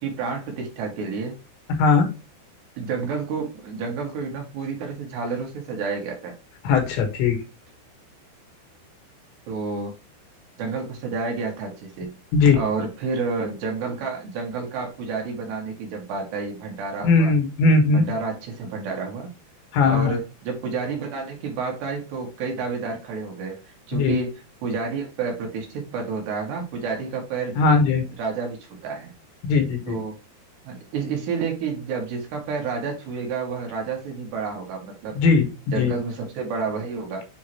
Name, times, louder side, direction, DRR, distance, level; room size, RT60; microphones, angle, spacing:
voice 1, 0.0-1.4 2.8-6.4 9.5-9.9 10.6-12.2 12.5-17.3 17.9-19.3 19.9-23.6 23.9-27.6 28.2-29.1 29.9-30.2 30.7-35.2 35.7-37.3, right 4 dB, 70° right, 3.9 m, -30 dB
voice 2, 6.6-7.4 12.3-12.6 17.0-18.1 19.7-20.2 23.9-24.2 27.6-28.1 29.4-30.0 35.2-35.5 35.8-35.9, left 4 dB, 75° left, 3.8 m, -19 dB
9.3 x 3.7 x 3.0 m
omnidirectional pair, 5.3 m